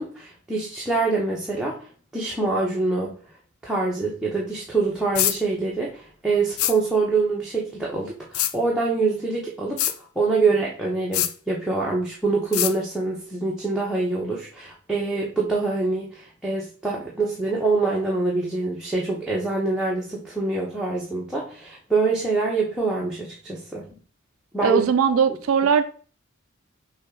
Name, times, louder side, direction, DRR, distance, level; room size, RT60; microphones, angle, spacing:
voice 1, 0.0-1.8 2.1-3.1 3.6-9.8 10.2-23.8 24.5-24.8, right 3 dB, 5° right, -5 dB, 0.8 m, -25 dB
sound 1, 5.2-5.4 6.6-6.8 8.3-8.5 9.8-10.0 11.1-11.3 12.5-12.7, left 12 dB, 85° left, 0.4 m, -23 dB
voice 2, 24.6-25.8, right 6 dB, 75° right, 10 dB, 0.4 m, -19 dB
6.1 x 2.4 x 3.7 m, 0.41 s
head